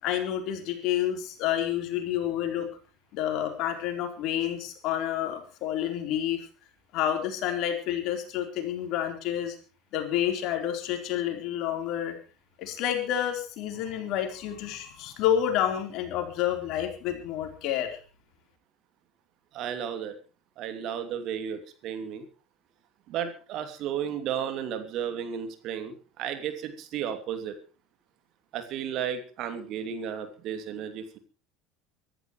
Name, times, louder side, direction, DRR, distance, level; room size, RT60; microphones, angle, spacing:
voice 1, 0.0-2.7 3.1-6.5 6.9-9.6 9.9-12.1 12.6-18.0, left 10 dB, 55° left, 6 dB, 4.0 m, -29 dB
voice 2, 19.5-20.2 20.6-22.2 23.1-27.6 28.5-31.2, right 8 dB, 50° right, 8 dB, 2.8 m, -33 dB
24.0 x 13.0 x 3.2 m, 0.37 s
figure-of-eight pair, 70°, 0 cm